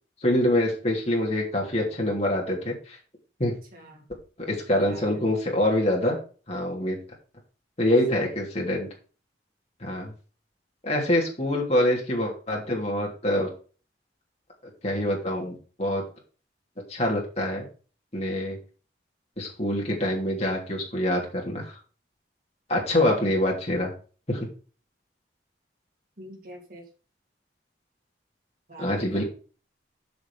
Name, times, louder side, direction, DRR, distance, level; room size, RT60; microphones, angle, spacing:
voice 1, 0.2-2.7 3.4-3.5 4.4-6.2 6.5-7.0 7.8-8.9 9.8-10.1 10.8-13.5 14.8-16.0 16.9-17.7 18.1-18.6 19.4-21.8 22.7-23.9 24.3-24.5 28.8-29.2, left 1 dB, 35° left, -1 dB, 3.1 m, -25 dB
voice 2, 3.4-4.0 4.7-5.2 26.2-26.8 28.7-29.2, right 1 dB, 50° right, 1 dB, 2.9 m, -46 dB
7.0 x 6.2 x 5.3 m, 0.37 s
head